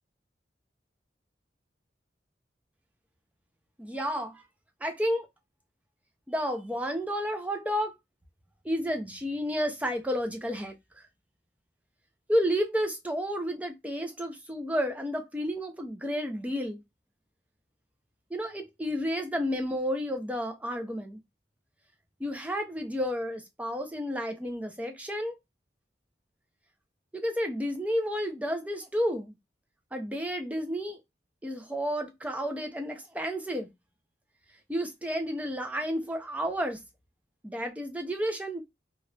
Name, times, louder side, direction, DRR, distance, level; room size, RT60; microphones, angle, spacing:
voice 1, 3.8-4.4 4.8-5.3 6.3-7.9 8.6-10.7 12.3-16.8 18.3-21.2 22.2-25.4 27.1-29.3 29.9-31.0 31.4-33.7 34.7-36.8 37.4-38.6, equal, 10° right, 0.6 m, -31 dB
3.0 x 2.4 x 3.3 m
head